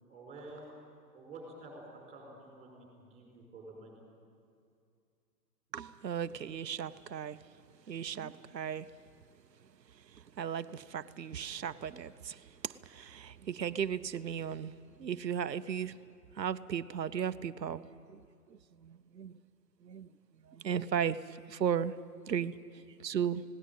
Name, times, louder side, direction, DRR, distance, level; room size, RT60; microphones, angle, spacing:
voice 1, 0.1-0.7 1.1-4.0, right 2 dB, 15° right, 0 dB, 5.1 m, -50 dB
voice 2, 5.7-7.5 7.9-8.9 9.9-14.7 15.0-16.0 16.3-18.2 18.5-19.4 19.8-20.1 20.4-21.9 22.3-23.4, right 8 dB, 75° right, 15 dB, 0.8 m, -36 dB
19.0 x 17.5 x 9.1 m, 2.4 s
figure-of-eight pair, 125°, 50 cm